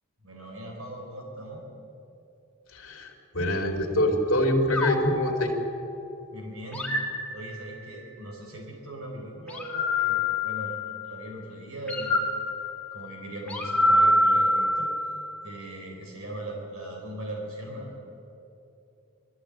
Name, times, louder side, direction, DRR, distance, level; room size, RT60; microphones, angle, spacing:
voice 1, 0.2-1.6 6.3-6.9 7.3-12.4 12.9-14.9 15.4-18.0, right 1 dB, 70° right, 0 dB, 3.8 m, -39 dB
voice 2, 2.7-5.5, left 1 dB, 65° left, 0 dB, 2.7 m, -25 dB
sound 1, 4.7-6.1 6.7-8.0 9.5-11.2 11.9-15.4, left 1 dB, 5° left, 2.0 m, -26 dB
20.5 x 14.0 x 9.0 m, 2.8 s
head